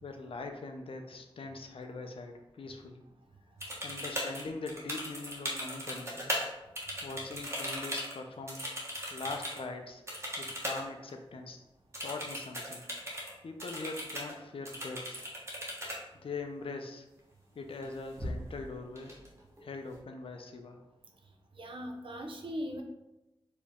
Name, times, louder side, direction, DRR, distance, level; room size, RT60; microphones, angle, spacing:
voice 1, 0.0-3.0 3.8-6.3 7.0-8.6 9.1-10.0 10.4-11.6 12.0-12.9 13.4-15.3 16.1-17.1 17.6-19.1 19.6-20.8, left 3 dB, 70° left, 5 dB, 0.6 m, -42 dB
sound 1, 3.6-6.5 6.8-9.6 10.1-10.8 11.1-11.2 11.9-13.3 13.6-14.3 14.7-16.0 17.7-17.9 18.2-18.6 19.0-19.6, equal, 30° right, 1.3 m, -38 dB
voice 2, 21.6-22.8, equal, 65° right, 3 dB, 0.7 m, -39 dB
4.5 x 3.0 x 3.5 m, 0.95 s
wide cardioid pair, 75°, 10 cm